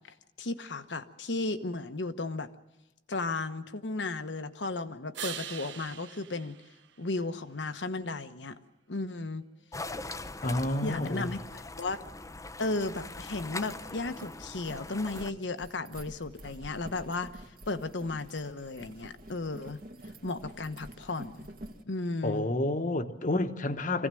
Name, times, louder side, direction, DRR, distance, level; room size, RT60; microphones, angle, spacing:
voice 1, 0.4-2.5 3.1-6.5 7.0-8.6 8.9-9.4 10.8-12.0 12.6-19.8 20.2-21.5 21.9-22.5, left 3 dB, 75° left, 1.2 m, -34 dB
sound 1, 5.1-7.7 13.5-17.4, right 9 dB, 75° right, 1.0 m, -47 dB
sound 2, 9.7-15.3, left 2 dB, 20° left, 0.7 m, -41 dB
voice 2, 10.4-11.3 22.2-24.1, left 2 dB, 45° left, 1.2 m, -29 dB
sound 3, 13.6-21.8, right 1 dB, 55° right, 1.9 m, -48 dB
24.5 x 16.5 x 7.7 m
head